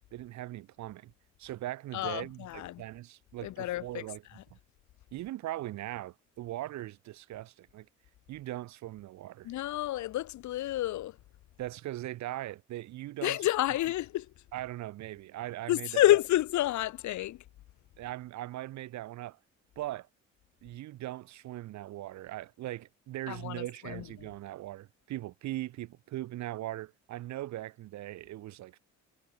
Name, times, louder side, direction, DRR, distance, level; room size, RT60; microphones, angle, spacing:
voice 1, 0.1-1.1 1.4-4.2 4.5-4.6 5.1-7.9 8.3-9.5 11.6-13.4 14.5-16.0 18.0-19.4 19.8-20.1 20.6-28.8, right 15 dB, 65° right, 0.6 m, -40 dB
voice 2, 1.9-2.8 3.4-4.4 9.4-11.2 13.2-14.3 15.7-17.4 23.3-24.3, left 14 dB, 70° left, 0.8 m, -29 dB
cardioid pair, 90°, 30 cm